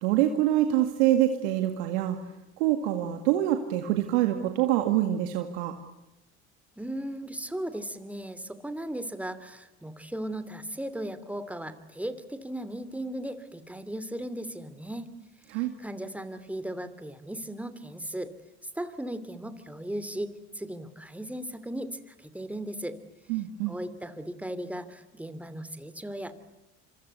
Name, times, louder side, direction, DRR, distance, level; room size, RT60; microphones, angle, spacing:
voice 1, 0.0-2.2 2.6-5.7 15.5-15.7 23.3-23.7, right 13 dB, 80° right, 6 dB, 2.0 m, -25 dB
voice 2, 6.8-15.1 15.5-18.3 18.6-23.0 23.7-26.3, right 1 dB, 5° right, 12 dB, 2.8 m, -37 dB
26.5 x 24.5 x 8.3 m, 0.95 s
hypercardioid pair, 70°, 33 cm